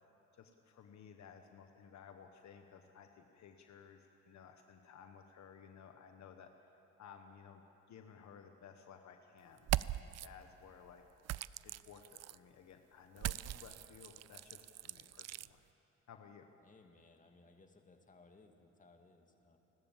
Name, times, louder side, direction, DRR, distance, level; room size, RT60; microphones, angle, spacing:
voice 1, 0.3-6.5 7.0-11.0 11.6-15.7 16.1-16.5, left 7 dB, 65° left, 5 dB, 1.3 m, -57 dB
sound 1, 9.6-10.3 11.2-12.4 13.2-15.5, right 14 dB, 60° right, 0.4 m, -40 dB
voice 2, 16.6-19.6, left 3 dB, 25° left, 4 dB, 2.2 m, -63 dB
29.5 x 12.5 x 7.5 m, 3.0 s
cardioid pair, 90°, 30 cm